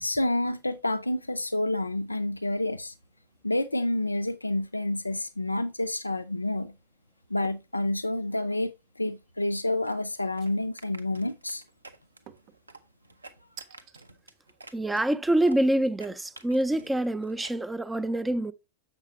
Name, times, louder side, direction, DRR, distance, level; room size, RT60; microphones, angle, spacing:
voice 1, 0.0-2.9 3.4-6.7 7.3-8.7 9.0-11.6, left 1 dB, 85° left, 0.4 m, -29 dB
sound 1, 7.4-7.7 8.2-8.7 10.4-10.9 12.3-12.6 13.6-14.0, right 8 dB, 40° right, 0.7 m, -50 dB
sound 2, 9.8-17.6, right 3 dB, 80° right, 0.7 m, -51 dB
voice 2, 14.7-18.5, right 1 dB, 10° right, 0.5 m, -26 dB
7.2 x 6.5 x 3.1 m
figure-of-eight pair, 90°, 0 cm